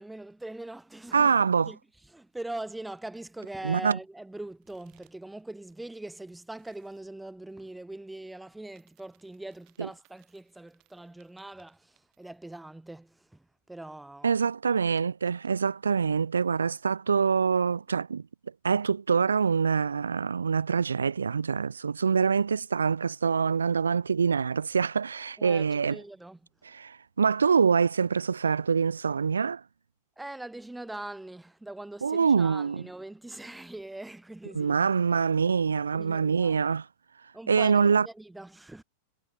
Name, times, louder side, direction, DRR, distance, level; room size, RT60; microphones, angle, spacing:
voice 1, 0.0-1.3 1.7-1.8 2.1-14.3 25.4-26.4 30.2-34.9 35.9-36.6 37.3-38.8, right 2 dB, 5° right, 0.9 m, -42 dB
voice 2, 1.1-1.7 3.6-4.0 9.8-9.9 14.2-18.2 18.6-26.0 26.6-29.6 32.0-32.8 34.5-36.9 37.5-38.1, right 6 dB, 75° right, 0.3 m, -25 dB
sound 1, 4.6-5.4 5.7-7.1 8.6-12.7 13.0-13.1 15.0-15.8, right 26 dB, 40° right, 5.4 m, -69 dB
figure-of-eight pair, 90°, 0 cm